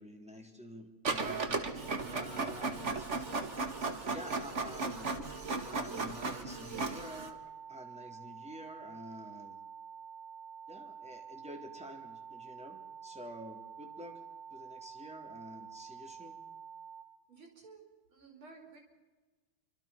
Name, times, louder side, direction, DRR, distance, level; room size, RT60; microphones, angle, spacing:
voice 1, 0.0-1.7 2.0-3.1 4.0-5.1 5.6-9.6 10.7-14.1 14.5-16.4, left 1 dB, 5° right, 3 dB, 3.3 m, -49 dB
Printer, 1.0-7.3, right 3 dB, 35° right, 2.0 m, -36 dB
sound 1, 7.0-17.0, right 7 dB, 55° right, 4.9 m, -49 dB
voice 2, 17.3-18.8, right 4 dB, 80° right, 2 dB, 5.8 m, -54 dB
27.5 x 25.5 x 6.0 m, 1.2 s
omnidirectional pair, 2.3 m